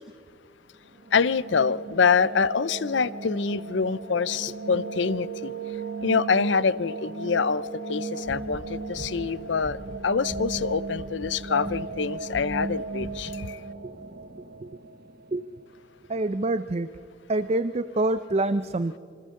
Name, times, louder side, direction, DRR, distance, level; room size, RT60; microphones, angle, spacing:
sound 1, 0.8-15.8, right 3 dB, 55° right, 1.3 m, -36 dB
voice 1, 1.1-5.5 6.0-9.8 10.0-13.6, left 5 dB, 70° left, 18 dB, 0.6 m, -25 dB
sound 2, 8.2-10.7 10.9-11.3 11.6-12.0 12.3-12.7 13.0-13.3, equal, ahead, 1.7 m, -41 dB
voice 2, 16.1-16.9 17.3-19.0, right 2 dB, 35° right, 12 dB, 0.5 m, -26 dB
27.0 x 26.0 x 3.8 m, 2.5 s
head